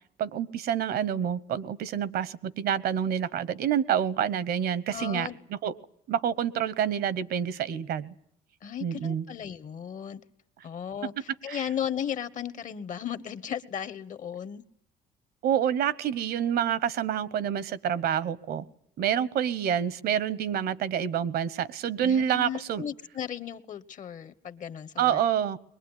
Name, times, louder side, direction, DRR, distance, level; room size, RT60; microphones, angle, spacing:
voice 1, 0.2-5.7 6.1-8.1 8.8-9.2 11.5-11.6 15.4-18.6 19.0-22.8 25.0-25.6, right 9 dB, 70° right, 1.1 m, -28 dB
voice 2, 4.9-5.4 8.6-10.2 10.6-14.6 22.0-25.2, left 9 dB, 50° left, 1.2 m, -35 dB
22.0 x 19.5 x 9.8 m
cardioid pair, 110°, 17 cm